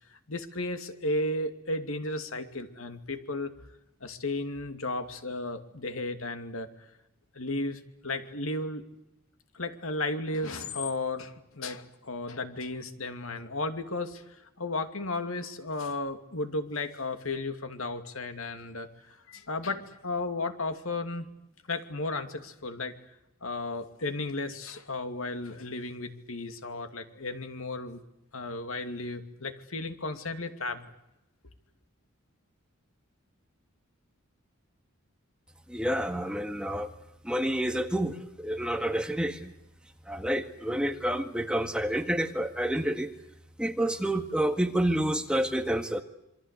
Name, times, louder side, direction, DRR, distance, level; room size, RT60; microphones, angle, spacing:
voice 1, 0.1-3.5 4.0-6.7 7.3-8.8 9.5-21.3 21.7-22.9 23.4-28.0 28.3-30.9, left 2 dB, 80° left, 8 dB, 2.6 m, -34 dB
voice 2, 35.7-36.9 37.2-39.5 40.1-43.1 43.6-46.0, right 1 dB, 5° right, 6 dB, 1.8 m, -29 dB
27.0 x 23.5 x 8.4 m, 0.86 s
head